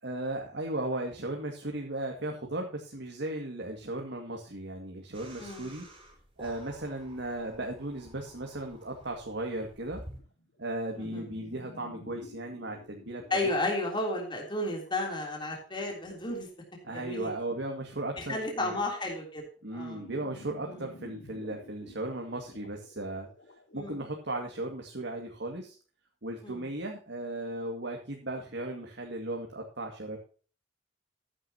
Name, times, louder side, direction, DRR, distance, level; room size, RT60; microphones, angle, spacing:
voice 1, 0.0-5.9 6.4-10.0 10.6-13.5 16.8-18.8 19.6-23.3 23.7-25.8 26.2-30.2, right 1 dB, 70° right, 2 dB, 2.2 m, -36 dB
sound 1, 5.1-10.2, right 1 dB, 30° right, 4.8 m, -51 dB
sound 2, 8.3-16.5 19.9-25.7, left 1 dB, 85° left, 2.0 m, -53 dB
voice 2, 13.3-16.5 16.9-17.3 18.2-19.4 19.7-20.0 20.7-20.8 23.7-24.0 26.4-26.7, left 2 dB, 25° left, 0 dB, 3.4 m, -33 dB
14.0 x 10.0 x 2.9 m, 0.40 s
head